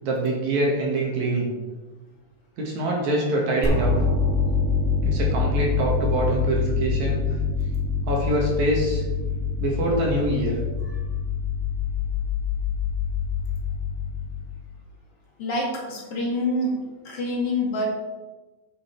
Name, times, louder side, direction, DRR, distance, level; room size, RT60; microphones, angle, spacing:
voice 1, 0.0-1.5 2.6-3.9 5.0-7.2 8.1-9.0 9.6-10.6, right 1 dB, 60° right, -2 dB, 2.5 m, -24 dB
sound 1, 3.6-14.6, left 4 dB, 15° right, 1.0 m, -25 dB
voice 2, 15.4-16.8 17.0-17.9, left 1 dB, 45° left, -2 dB, 2.3 m, -26 dB
8.8 x 6.9 x 4.3 m, 1.2 s
omnidirectional pair, 4.4 m